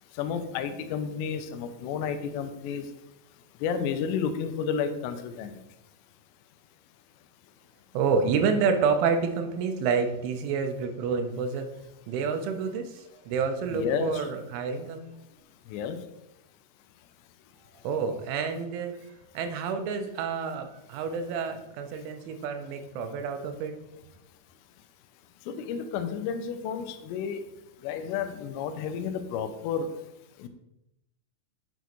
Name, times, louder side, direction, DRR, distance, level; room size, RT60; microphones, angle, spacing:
voice 1, 0.2-2.9 3.6-5.6 13.7-14.3 15.7-16.0 25.5-27.4 27.8-29.9 30.4-30.5, left 7 dB, 80° left, 8 dB, 2.6 m, -31 dB
voice 2, 7.9-11.7 12.1-15.1 17.8-19.0 19.3-23.8, right 5 dB, 90° right, 6 dB, 3.2 m, -28 dB
8.0 x 6.3 x 3.0 m, 0.88 s
omnidirectional pair, 5.4 m